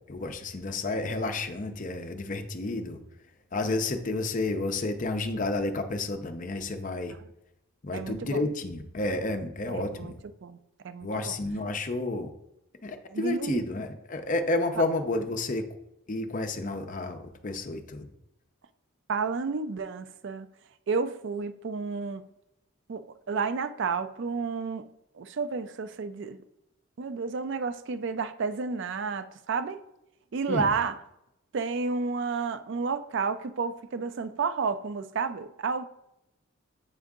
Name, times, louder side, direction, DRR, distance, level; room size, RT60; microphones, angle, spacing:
voice 1, 0.1-3.0 3.5-7.2 7.8-10.1 11.0-12.3 12.8-15.7 16.1-18.1 30.5-30.7, left 2 dB, 35° left, 6 dB, 0.5 m, -31 dB
voice 2, 7.9-8.4 9.7-10.1 10.4-10.6 10.8-11.4 13.1-13.6 19.1-20.5 20.9-22.2 22.9-24.9 25.2-26.4 27.0-29.8 30.3-31.0 31.5-35.8, right 4 dB, 55° right, 11 dB, 0.4 m, -31 dB
8.0 x 3.7 x 3.6 m, 0.84 s
head